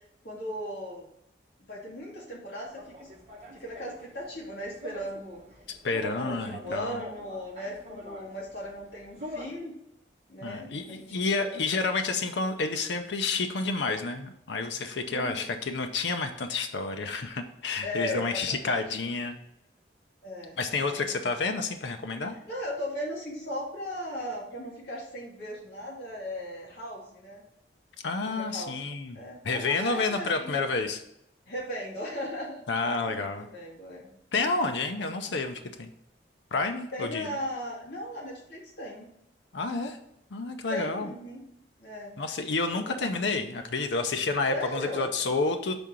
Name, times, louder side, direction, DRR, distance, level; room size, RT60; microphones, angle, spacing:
voice 1, 0.2-1.1 1.6-3.1 3.5-5.4 6.1-9.7 10.3-11.1 11.4-11.6 15.1-15.6 17.8-18.8 20.2-21.3 22.5-27.4 28.3-28.9 29.1-30.6 31.5-34.5 36.9-39.1 40.7-41.4 41.8-42.1 42.7-43.1 44.5-45.1, equal, 60° left, -4 dB, 2.0 m, -37 dB
sound 1, 2.7-9.6, left 1 dB, 40° right, 1.0 m, -45 dB
voice 2, 5.8-7.0 10.4-19.4 20.6-22.4 28.0-29.2 29.4-31.0 32.7-33.5 34.3-35.9 36.5-37.3 39.5-40.0 40.3-41.1 42.2-45.7, left 3 dB, 75° left, 6 dB, 0.6 m, -29 dB
5.3 x 3.7 x 5.9 m, 0.77 s
head